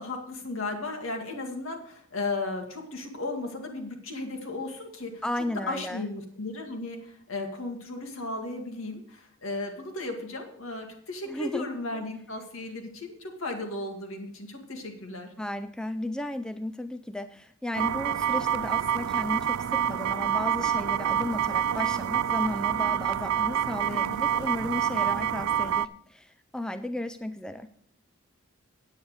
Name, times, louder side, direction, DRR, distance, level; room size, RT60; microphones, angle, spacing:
voice 1, 0.0-5.2 5.7-15.3 23.9-24.2, left 2 dB, 75° left, 3 dB, 2.0 m, -35 dB
voice 2, 5.2-6.1 11.3-12.0 15.4-27.7, left 1 dB, 5° left, 10 dB, 0.3 m, -34 dB
sound 1, 17.7-25.9, right 9 dB, 85° right, 0.4 m, -27 dB
9.5 x 8.8 x 4.9 m, 0.62 s
head